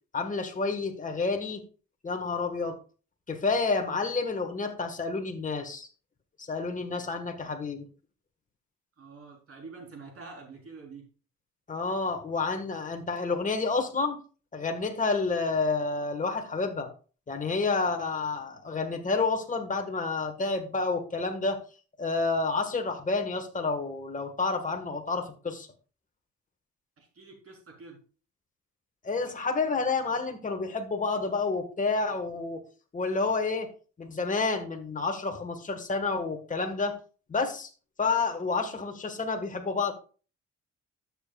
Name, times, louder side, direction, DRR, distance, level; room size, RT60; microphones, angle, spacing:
voice 1, 0.1-1.6 2.0-2.8 3.3-5.9 6.4-7.9 11.7-14.2 14.5-16.9 17.3-21.6 22.0-25.7 29.0-32.6 32.9-33.7 34.0-36.9 37.3-37.7 38.0-39.9, left 4 dB, 25° left, 4 dB, 1.6 m, -29 dB
voice 2, 9.0-11.1 27.0-28.0, right 4 dB, 50° right, 0 dB, 4.1 m, -47 dB
12.5 x 7.2 x 2.4 m, 0.37 s
cardioid pair, 90°, 30 cm